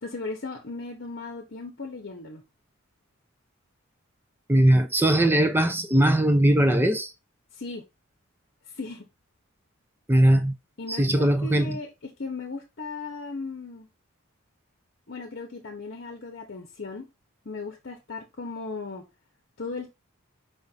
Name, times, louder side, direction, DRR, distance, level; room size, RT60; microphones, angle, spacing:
voice 1, 0.0-2.4 7.5-7.8 8.7-9.1 10.8-13.9 15.1-17.1 17.4-19.0 19.6-19.9, left 3 dB, 55° left, 0.8 m, -36 dB
voice 2, 4.5-7.1 10.1-10.5 10.9-11.8, right 1 dB, 10° right, 0.5 m, -20 dB
5.1 x 2.6 x 4.0 m
head